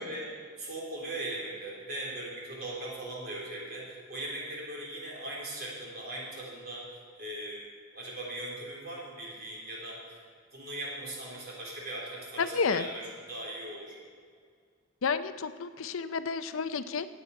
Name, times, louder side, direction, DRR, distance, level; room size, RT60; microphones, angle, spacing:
voice 1, 0.0-7.6 7.9-10.2 10.5-14.0, right 1 dB, 50° right, -4 dB, 3.8 m, -39 dB
voice 2, 12.4-12.8 15.0-17.1, left 5 dB, 80° left, 12 dB, 0.6 m, -30 dB
16.5 x 8.7 x 4.8 m, 2.1 s
head